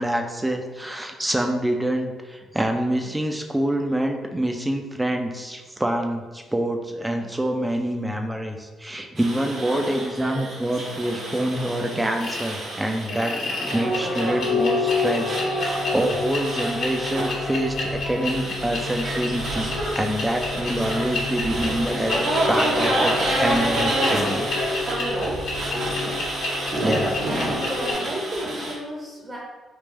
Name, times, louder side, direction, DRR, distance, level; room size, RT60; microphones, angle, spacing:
voice 1, 0.0-13.4 13.7-22.2 22.5-25.4 26.8-27.2, right 1 dB, 10° right, 4 dB, 0.4 m, -26 dB
sound 1, 9.2-28.7, right 1 dB, 65° right, 0.9 m, -29 dB
sound 2, 12.2-12.5 13.0-27.9, left 3 dB, 75° left, 1.0 m, -28 dB
voice 2, 27.2-29.4, equal, 25° right, -4 dB, 0.8 m, -33 dB
3.4 x 2.5 x 3.1 m, 1.3 s
cardioid pair, 90°, 0 cm